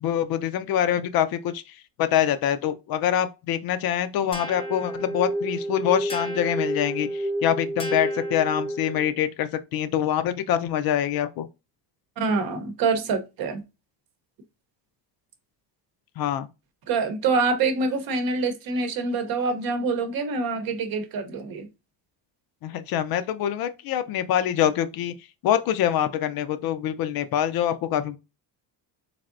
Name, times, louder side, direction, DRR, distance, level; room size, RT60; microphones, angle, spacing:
voice 1, 0.0-1.6 2.0-11.5 16.2-16.5 22.6-25.1 25.4-28.2, left 10 dB, 60° left, 0.5 m, -25 dB
sound 1, 4.3-9.1, right 1 dB, 15° left, 0.7 m, -30 dB
voice 2, 12.2-13.6 16.9-21.7, right 4 dB, 55° right, 0.8 m, -25 dB
3.6 x 3.3 x 2.5 m
cardioid pair, 150°, 42 cm